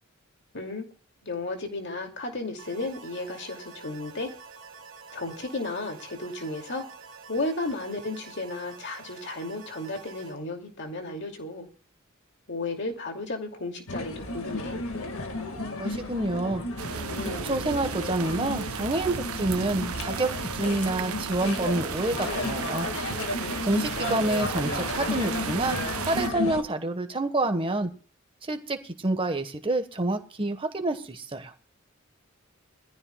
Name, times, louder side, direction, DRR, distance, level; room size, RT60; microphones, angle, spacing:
voice 1, 0.5-0.9 1.2-4.3 5.1-6.9 7.3-11.7 12.5-14.8 24.0-24.2, left 2 dB, 55° left, 3 dB, 2.6 m, -34 dB
sound 1, 2.6-10.4, right 5 dB, 60° right, 2.9 m, -47 dB
sound 2, 13.9-26.6, left 2 dB, 75° left, 1.9 m, -33 dB
voice 2, 15.8-16.6 16.9-22.9 23.7-27.9 28.4-31.5, right 2 dB, 25° right, 7 dB, 1.3 m, -28 dB
sound 3, 16.8-26.3, right 7 dB, 90° right, 0.7 m, -35 dB
21.5 x 14.5 x 2.3 m, 0.40 s
head